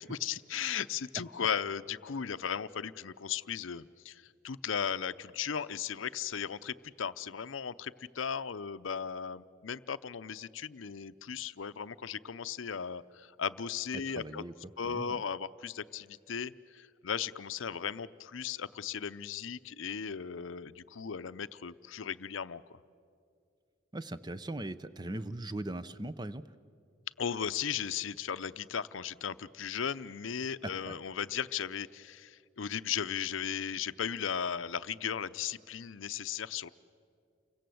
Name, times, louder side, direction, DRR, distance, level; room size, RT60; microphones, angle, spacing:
voice 1, 0.0-14.4 14.8-22.8 27.2-36.7, left 7 dB, 80° left, 14 dB, 0.6 m, -36 dB
voice 2, 13.9-14.5 14.8-15.2 23.9-26.4 30.6-30.9, right 1 dB, 20° right, 13 dB, 0.6 m, -40 dB
29.5 x 24.0 x 7.8 m, 2.4 s
head